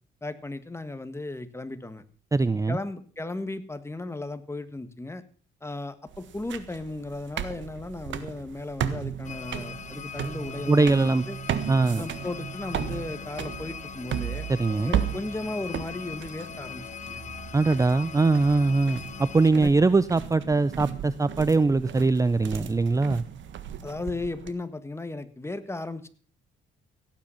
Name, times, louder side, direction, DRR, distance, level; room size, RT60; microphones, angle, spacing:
voice 1, 0.2-2.0 2.7-5.2 5.6-11.4 12.0-14.5 14.8-17.3 19.5-19.7 23.8-26.1, left 2 dB, 15° left, 11 dB, 1.6 m, -35 dB
voice 2, 2.3-2.8 10.7-11.2 11.7-12.0 14.5-14.9 17.5-23.2, right 3 dB, 15° right, 16 dB, 0.5 m, -22 dB
sound 1, 6.1-24.5, right 9 dB, 70° right, 1.5 m, -35 dB
sound 2, 9.2-19.5, left 7 dB, 35° left, 0.8 m, -41 dB
16.5 x 9.1 x 5.7 m, 0.43 s
cardioid pair, 90°, 20 cm